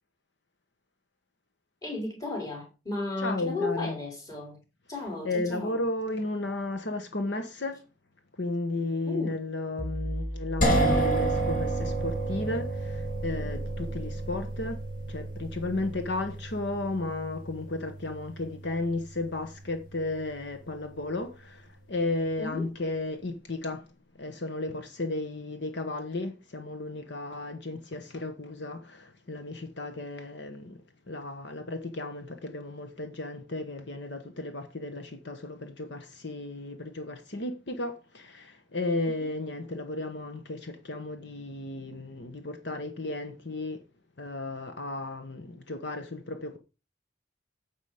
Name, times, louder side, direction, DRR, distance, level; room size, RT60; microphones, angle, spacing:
voice 1, 1.8-4.6 4.9-5.8 9.1-9.4 22.4-22.7 39.0-39.1, left 2 dB, 20° left, 4.3 m, -34 dB
voice 2, 3.2-4.0 5.2-7.8 8.3-23.9 24.1-43.8 44.2-46.6, left 2 dB, 60° left, 1.1 m, -34 dB
sound 1, 9.8-21.2, equal, 15° right, 1.6 m, -40 dB
sound 2, 10.6-20.4, right 2 dB, 45° left, 2.3 m, -31 dB
9.7 x 7.3 x 4.9 m
head